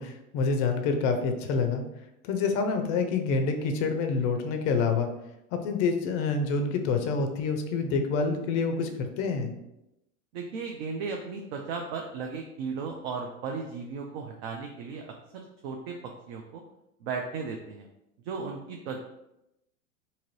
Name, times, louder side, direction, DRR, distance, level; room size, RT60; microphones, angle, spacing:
voice 1, 0.0-1.8 2.2-5.1 5.5-9.5, left 4 dB, 40° left, 6 dB, 0.5 m, -27 dB
voice 2, 10.3-16.6 17.0-17.9 18.2-19.0, right 5 dB, 45° right, 2 dB, 0.4 m, -36 dB
2.8 x 2.5 x 3.0 m, 0.87 s
hypercardioid pair, 115°, 43 cm